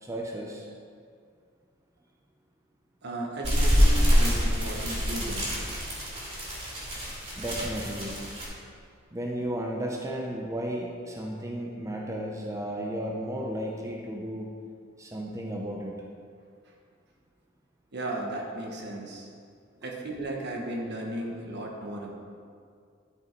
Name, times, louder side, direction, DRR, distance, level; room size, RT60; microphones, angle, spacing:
voice 1, 0.0-0.6 7.4-8.2 9.1-14.5 15.0-15.9, right 1 dB, 15° right, -1 dB, 0.7 m, -34 dB
voice 2, 3.0-5.5 17.9-19.3 19.8-22.1, right 1 dB, 60° right, 0 dB, 1.3 m, -35 dB
sound 1, 3.4-8.5, equal, 30° right, 2.5 m, -25 dB
11.0 x 5.5 x 4.6 m, 2.2 s
head